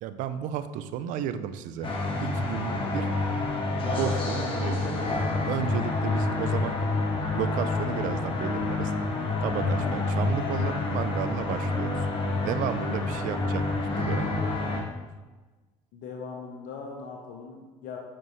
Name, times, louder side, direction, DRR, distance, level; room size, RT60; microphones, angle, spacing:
voice 1, 0.0-1.9 2.2-3.1 4.0-4.9 5.4-6.8 7.3-8.9 9.4-12.1 12.4-14.4, right 9 dB, 70° right, 12 dB, 0.5 m, -33 dB
sound 1, 1.8-14.8, left 2 dB, 40° left, 1.5 m, -28 dB
voice 2, 15.9-18.0, left 5 dB, 70° left, 1 dB, 0.9 m, -40 dB
7.7 x 5.2 x 3.2 m, 1.2 s
supercardioid pair, 85°, 14 cm